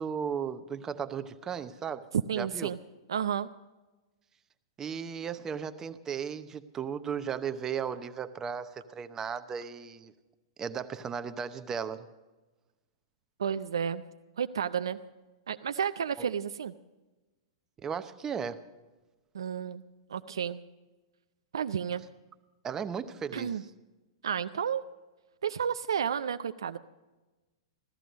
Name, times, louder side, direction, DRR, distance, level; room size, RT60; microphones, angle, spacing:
voice 1, 0.0-2.0 2.3-2.7 4.8-10.1 10.6-12.1 16.2-16.3 17.8-18.6 22.6-23.6, right 7 dB, 20° right, 10 dB, 0.8 m, -35 dB
voice 2, 2.3-2.8 3.1-3.5 13.4-14.0 14.4-15.0 15.5-16.7 19.3-19.8 20.1-20.6 21.5-22.0 23.3-23.6 24.2-24.8 25.4-26.8, right 8 dB, 75° right, 10 dB, 0.5 m, -31 dB
15.5 x 13.5 x 5.1 m, 1.1 s
hypercardioid pair, 110°, 2 cm